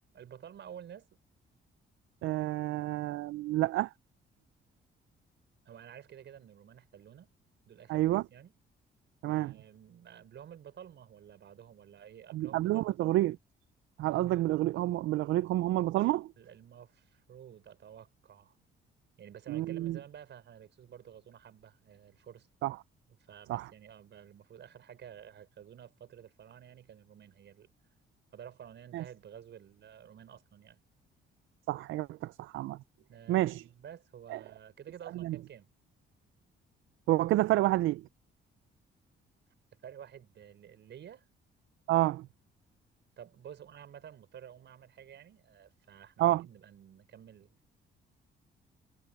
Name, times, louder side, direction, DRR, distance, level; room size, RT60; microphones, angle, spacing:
voice 1, 0.1-1.1 5.6-7.3 7.7-8.5 9.3-13.1 16.4-18.6 19.2-22.5 23.2-27.7 28.3-30.8 33.1-35.7 39.8-41.3 43.2-47.6, right 9 dB, 65° right, 5.8 m, -51 dB
voice 2, 2.2-3.9 7.9-8.2 9.2-9.5 12.3-13.4 14.0-16.3 19.5-20.0 22.6-22.8 23.5-23.7 28.9-29.0 31.7-32.8 33.3-33.6 34.3-34.4 35.1-35.4 37.1-38.0 41.9-42.3 46.2-46.4, right 16 dB, 85° right, 0.5 m, -29 dB
cardioid pair, 90°, 20 cm